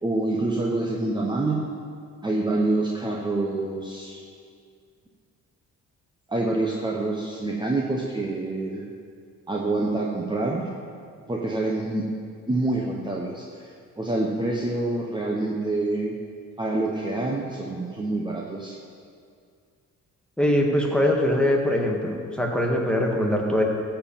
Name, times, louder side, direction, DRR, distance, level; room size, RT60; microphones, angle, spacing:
voice 1, 0.0-1.6 2.2-4.2 6.3-8.9 9.5-10.7 11.3-12.0 12.5-16.1 16.6-18.8, right 2 dB, 15° right, -2 dB, 1.1 m, -26 dB
voice 2, 20.4-23.6, left 1 dB, 5° left, 0 dB, 1.7 m, -22 dB
13.5 x 4.6 x 7.4 m, 2.2 s
cardioid pair, 90°, 30 cm